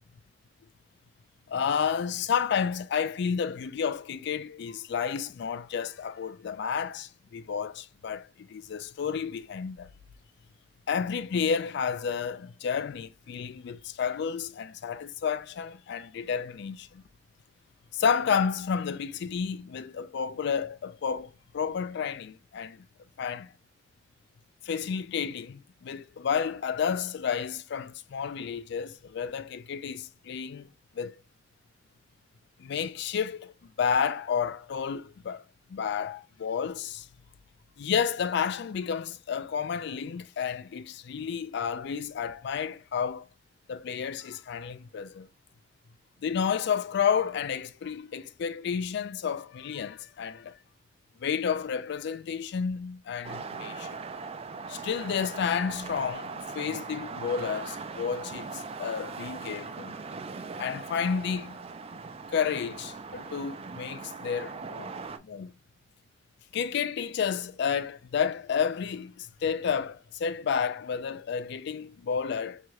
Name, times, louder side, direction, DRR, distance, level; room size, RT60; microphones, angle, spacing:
voice 1, 1.5-9.9 10.9-17.0 17.9-22.8 23.2-23.5 24.6-30.7 31.0-31.1 32.6-33.5 33.8-35.4 35.7-37.1 37.8-43.3 43.7-45.3 46.2-50.5 51.2-54.0 54.7-59.9 60.6-61.6 62.3-64.9 65.2-65.5 66.5-72.6, left 7 dB, 65° left, 0.4 m, -31 dB
sound 1, 53.2-65.2, right 4 dB, 30° right, 0.4 m, -40 dB
4.6 x 2.9 x 2.3 m
head